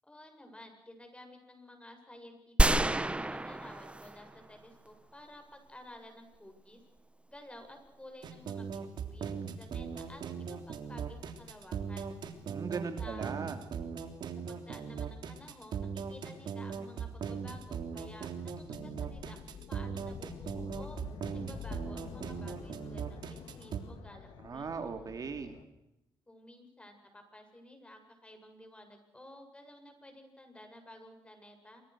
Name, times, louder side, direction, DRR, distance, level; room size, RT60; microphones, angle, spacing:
voice 1, 0.0-6.8 7.3-8.8 9.1-12.1 13.0-13.3 14.5-21.0 21.3-24.7 26.3-31.8, left 1 dB, 15° left, 5 dB, 7.8 m, -53 dB
sound 1, 2.6-4.5 4.9-5.0, right 2 dB, 15° right, 1.2 m, -28 dB
sound 2, 8.2-23.8, right 6 dB, 70° right, 3.4 m, -39 dB
voice 2, 12.5-13.6 24.4-25.6, right 5 dB, 50° right, 7 dB, 2.8 m, -38 dB
sound 3, 17.8-25.6, left 6 dB, 80° left, 2.5 m, -48 dB
28.0 x 25.0 x 6.4 m, 0.90 s
cardioid pair, 85°, 8 cm